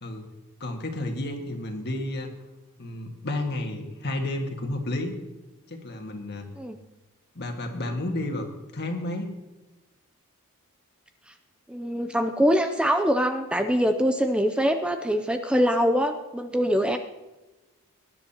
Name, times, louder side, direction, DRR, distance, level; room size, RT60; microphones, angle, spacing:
voice 1, 0.6-2.3 2.8-5.2 5.7-6.5 7.4-8.5 8.7-9.3, left 1 dB, 50° left, 3 dB, 1.8 m, -31 dB
voice 2, 11.7-17.0, equal, 5° right, 7 dB, 0.5 m, -23 dB
19.0 x 10.5 x 2.9 m, 1.1 s
head